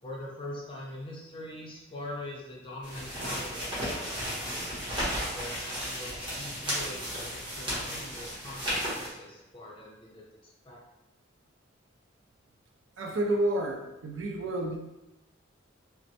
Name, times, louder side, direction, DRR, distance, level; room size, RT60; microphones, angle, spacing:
voice 1, 0.0-4.8 5.3-10.8, left 1 dB, 25° left, -2 dB, 0.6 m, -43 dB
sound 1, 2.8-9.1, equal, 25° right, 0.9 m, -34 dB
voice 2, 13.0-14.8, right 1 dB, 85° right, 2 dB, 0.5 m, -30 dB
3.0 x 2.1 x 2.7 m, 0.94 s
head